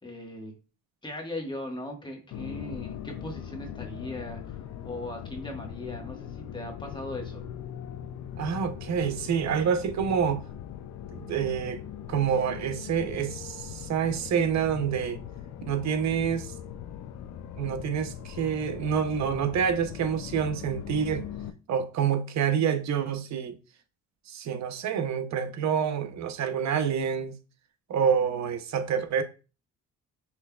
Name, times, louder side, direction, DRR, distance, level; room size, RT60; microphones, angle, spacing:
voice 1, 0.0-0.5 1.0-7.4, left 1 dB, 15° left, 1.4 m, -39 dB
sound 1, 2.3-21.5, left 9 dB, 65° left, 0.5 m, -40 dB
voice 2, 8.4-10.4 11.1-11.8 12.1-15.2 15.7-16.5 17.6-21.3 21.7-23.5 24.3-27.3 27.9-29.2, right 7 dB, 65° right, 0.7 m, -27 dB
5.7 x 3.2 x 2.3 m
cardioid pair, 90°, 30 cm